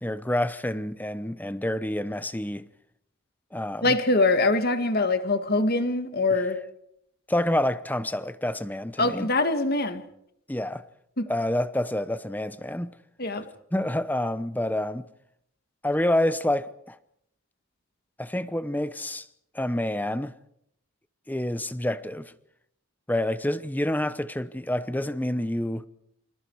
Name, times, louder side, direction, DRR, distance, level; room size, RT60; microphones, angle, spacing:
voice 1, 0.0-2.7 3.5-4.0 6.3-6.4 7.3-9.3 10.5-10.9 11.3-13.0 13.7-15.1 15.8-17.0 18.2-19.3 19.5-20.3 21.3-22.3 23.1-25.9, left 1 dB, 10° left, 0.9 m, -28 dB
voice 2, 3.8-6.6 9.0-10.0 11.2-11.3 13.2-13.5, left 2 dB, 45° left, 2.0 m, -23 dB
28.5 x 27.0 x 4.8 m
head